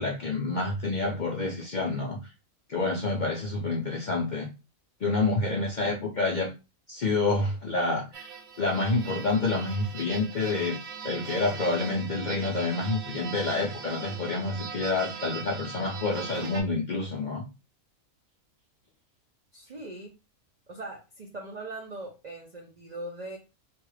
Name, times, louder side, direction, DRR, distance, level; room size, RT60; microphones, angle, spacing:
voice 1, 0.0-2.2 2.7-4.5 5.0-6.5 6.9-8.3 8.6-10.8 11.0-17.4, left 3 dB, 55° left, 0.5 m, -28 dB
sound 1, 8.1-16.6, right 6 dB, 85° right, 1.2 m, -40 dB
voice 2, 19.5-20.2 20.7-23.4, right 2 dB, 60° right, 0.4 m, -40 dB
3.3 x 2.3 x 3.1 m
omnidirectional pair, 1.4 m